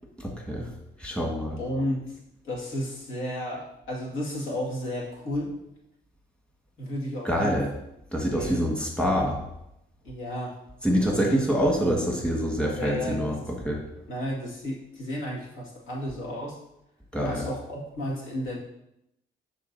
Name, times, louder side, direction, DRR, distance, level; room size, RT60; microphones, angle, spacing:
voice 1, 0.2-0.7 1.0-1.6 7.2-7.7 8.1-9.4 10.8-13.4 13.6-13.8 17.1-17.5, equal, 5° left, -1 dB, 1.5 m, -25 dB
voice 2, 1.6-2.2 2.4-5.5 6.8-7.6 8.3-8.7 10.0-10.6 12.7-13.4 14.1-16.6 17.2-18.6, equal, 80° left, -4 dB, 1.9 m, -32 dB
11.0 x 3.8 x 2.7 m, 0.82 s
cardioid pair, 90°, 20 cm